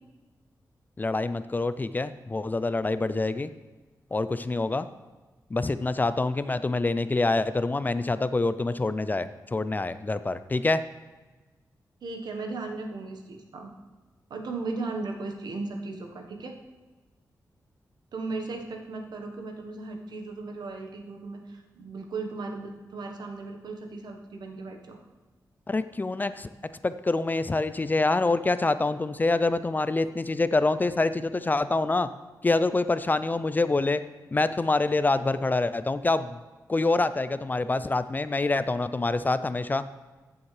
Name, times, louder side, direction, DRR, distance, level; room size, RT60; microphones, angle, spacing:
voice 1, 1.0-3.5 4.1-4.9 5.5-10.8 25.7-26.5 26.8-32.1 32.4-34.0 34.3-36.4 36.7-39.8, left 3 dB, 25° left, 13 dB, 0.4 m, -26 dB
voice 2, 12.0-13.7 14.3-16.6 18.1-25.0, right 3 dB, 80° right, 3 dB, 1.2 m, -36 dB
14.5 x 7.0 x 3.3 m, 1.2 s
cardioid pair, 85°, 7 cm